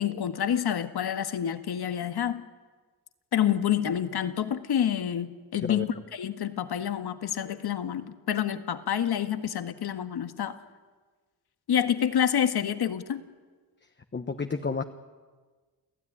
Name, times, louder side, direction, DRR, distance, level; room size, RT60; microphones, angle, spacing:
voice 1, 0.0-2.4 3.3-10.6 11.7-13.2, left 9 dB, 65° left, 9 dB, 1.7 m, -28 dB
voice 2, 14.1-14.8, left 4 dB, 25° left, 7 dB, 1.3 m, -30 dB
29.0 x 15.0 x 10.0 m, 1.4 s
cardioid pair, 80°, 41 cm